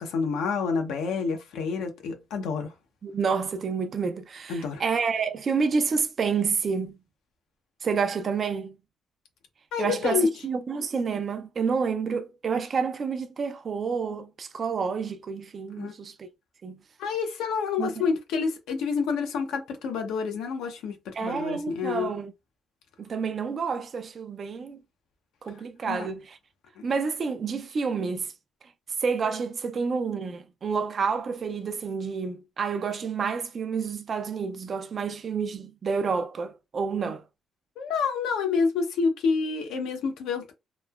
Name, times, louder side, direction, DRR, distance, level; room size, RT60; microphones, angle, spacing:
voice 1, 0.0-2.7 4.5-4.8 9.7-10.3 15.8-15.9 17.0-22.1 25.9-26.1 37.8-40.5, left 5 dB, 85° left, 0.7 m, -28 dB
voice 2, 3.0-6.9 7.8-8.7 9.8-16.3 16.6-16.8 17.8-17.9 21.1-22.3 23.0-24.8 25.4-26.4 26.8-28.3 29.0-37.2, right 5 dB, 45° right, 0.4 m, -29 dB
3.0 x 2.1 x 2.3 m
cardioid pair, 90°, 0 cm